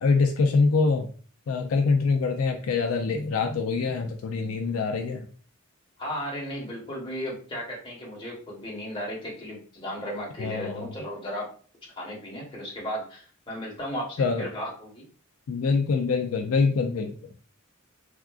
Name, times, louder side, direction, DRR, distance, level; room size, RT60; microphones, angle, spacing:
voice 1, 0.0-1.1 1.5-5.3 10.4-10.9 14.2-14.5 15.5-17.2, left 4 dB, 70° left, 4 dB, 0.3 m, -24 dB
voice 2, 6.0-11.5 12.0-15.1, equal, 25° left, -3 dB, 1.0 m, -35 dB
3.4 x 2.4 x 2.3 m, 0.42 s
head